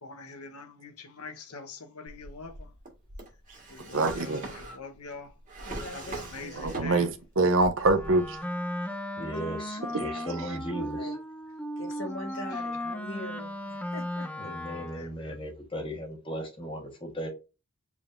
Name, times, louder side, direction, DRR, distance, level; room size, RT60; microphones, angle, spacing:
voice 1, 0.0-2.7 3.7-5.3 5.9-7.1 12.5-12.6 14.9-15.4, left 4 dB, 85° left, 1.0 m, -44 dB
Drawer open or close, 2.1-7.3 7.6-8.4, right 2 dB, 35° right, 1.5 m, -41 dB
voice 2, 3.9-4.4 6.6-8.4 9.9-10.1, right 2 dB, 60° right, 0.6 m, -25 dB
voice 3, 5.7-7.0 9.3-11.2 11.8-14.3, left 1 dB, 60° left, 1.7 m, -42 dB
Wind instrument woodwind instrument, 7.9-15.2, left 1 dB, 5° left, 0.4 m, -36 dB
voice 4, 9.2-11.2 14.4-17.3, equal, 25° left, 1.4 m, -37 dB
4.9 x 3.5 x 2.5 m
head